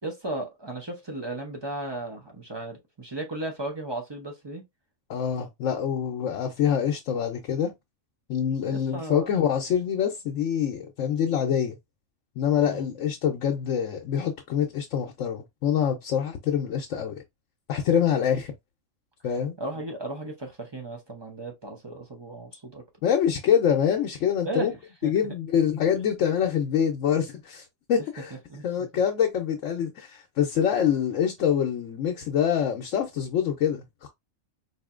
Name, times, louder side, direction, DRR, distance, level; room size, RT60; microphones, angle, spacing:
voice 1, 0.0-4.6 8.6-9.3 12.7-12.9 19.6-22.8 24.4-25.3 28.5-28.9, right 1 dB, 25° right, 0.6 m, -35 dB
voice 2, 5.1-7.7 8.3-11.8 12.4-17.1 17.7-18.5 19.2-19.6 23.0-24.7 25.0-28.4 28.6-34.1, left 8 dB, 75° left, 1.0 m, -25 dB
4.2 x 2.7 x 2.4 m
omnidirectional pair, 1.3 m